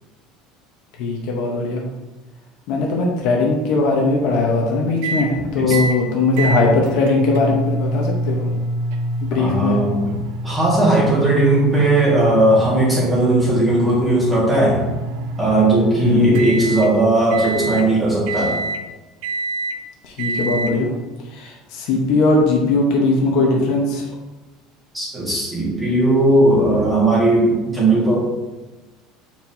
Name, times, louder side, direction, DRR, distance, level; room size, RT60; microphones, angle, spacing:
voice 1, 1.0-1.8 2.7-8.5 9.3-9.8 16.0-16.4 20.0-20.9 21.3-24.1, left 2 dB, 60° left, 0 dB, 1.1 m, -19 dB
sound 1, 5.0-5.3 5.7-6.0 6.4-16.9 17.3-17.9 18.3-18.8 19.2-19.8 20.2-20.7, right 1 dB, 75° right, 0.6 m, -26 dB
voice 2, 9.3-10.2 10.4-14.9 15.4-18.6 24.9-28.2, right 1 dB, 10° right, -7 dB, 2.0 m, -17 dB
7.4 x 4.6 x 2.9 m, 1.1 s
cardioid pair, 170°, 0 cm